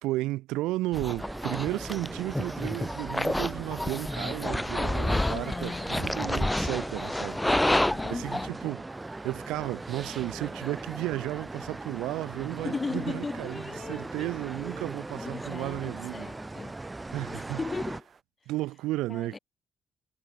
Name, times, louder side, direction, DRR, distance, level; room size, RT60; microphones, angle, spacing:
voice 1, 0.0-8.8 9.2-13.6 13.9-16.3 17.1-17.6 18.5-19.4, right 18 dB, 80° right, 0.5 m, -33 dB
sound 1, 0.9-8.5, left 1 dB, 10° left, 0.3 m, -29 dB
sound 2, 1.2-18.0, right 2 dB, 20° right, 1.6 m, -40 dB
voice 2, 5.1-5.9 7.9-8.6 12.6-14.3 15.2-16.8 17.2-18.0 19.1-19.4, left 4 dB, 35° left, 1.0 m, -36 dB
sound 3, 8.9-18.2, right 5 dB, 45° right, 3.1 m, -57 dB
hypercardioid pair, 50°, 0 cm